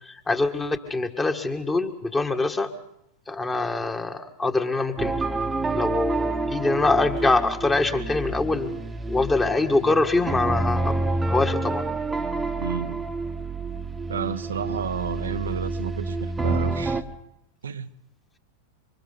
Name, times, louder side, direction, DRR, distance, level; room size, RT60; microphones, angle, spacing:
voice 1, 0.0-2.7 3.3-5.3 5.7-8.8 9.1-11.8, left 3 dB, 15° left, 6 dB, 1.8 m, -24 dB
sound 1, 5.0-17.0, right 2 dB, 10° right, 1.1 m, -28 dB
voice 2, 12.6-13.0 14.1-17.0 17.6-17.9, right 7 dB, 70° right, 10 dB, 0.7 m, -31 dB
27.0 x 25.5 x 4.1 m, 0.77 s
figure-of-eight pair, 90°, 0 cm